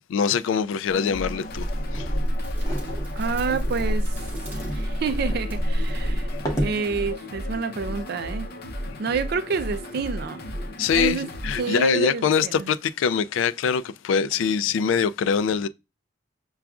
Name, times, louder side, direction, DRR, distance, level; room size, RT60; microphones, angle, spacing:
voice 1, 0.1-1.7 1.9-2.1 10.8-15.7, left 6 dB, 80° left, 0.3 m, -23 dB
sound 1, 0.9-12.9, equal, 55° left, 0.7 m, -35 dB
sound 2, 1.1-7.1, right 1 dB, 10° right, 1.7 m, -52 dB
sound 3, 1.5-6.8, equal, 20° left, 0.9 m, -27 dB
voice 2, 3.2-4.2 4.5-6.3 6.5-8.5 9.0-10.4 10.9-11.3 11.6-12.7, right 5 dB, 55° right, 0.4 m, -28 dB
6.8 x 2.3 x 2.4 m
head